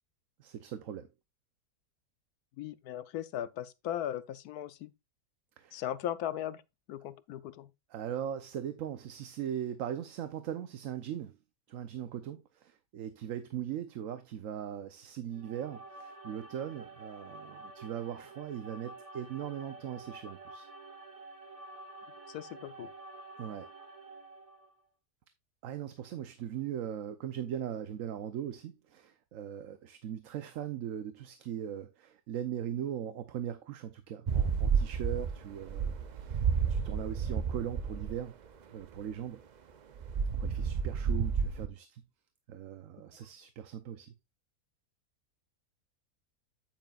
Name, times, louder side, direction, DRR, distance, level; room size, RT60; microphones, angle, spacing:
voice 1, 0.4-1.1 5.6-5.8 7.9-11.4 11.7-20.7 23.4-23.7 25.6-36.4 36.7-38.3 38.7-39.4 40.4-42.0 42.5-44.1, right 10 dB, 65° right, 1.0 m, -39 dB
voice 2, 2.6-4.9 5.7-6.6 6.9-7.7 22.3-22.9, left 11 dB, 85° left, 1.2 m, -38 dB
sound 1, 15.3-24.8, right 2 dB, 25° right, 1.1 m, -49 dB
sound 2, 34.3-38.2 40.0-41.7, right 6 dB, 80° right, 0.4 m, -31 dB
9.3 x 8.8 x 2.4 m
omnidirectional pair, 1.6 m